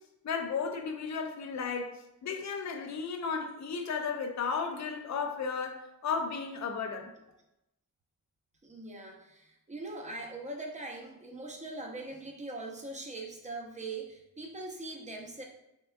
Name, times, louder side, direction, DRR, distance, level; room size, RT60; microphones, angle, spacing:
voice 1, 0.2-7.1, left 5 dB, 50° left, 0.5 m, -34 dB
voice 2, 8.6-15.4, right 2 dB, 20° right, 0.6 m, -41 dB
3.7 x 3.4 x 2.2 m
wide cardioid pair, 115°, 35 cm